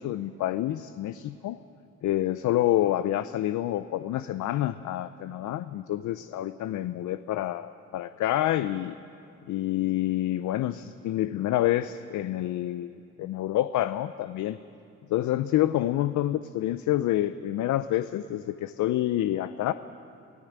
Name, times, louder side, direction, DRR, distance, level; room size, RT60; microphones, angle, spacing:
voice 1, 0.0-1.6 2.0-8.9 9.5-12.9 13.2-14.6 15.1-19.7, left 13 dB, 75° left, 13 dB, 0.6 m, -28 dB
24.0 x 15.0 x 8.9 m, 2.6 s
cardioid pair, 90°, 30 cm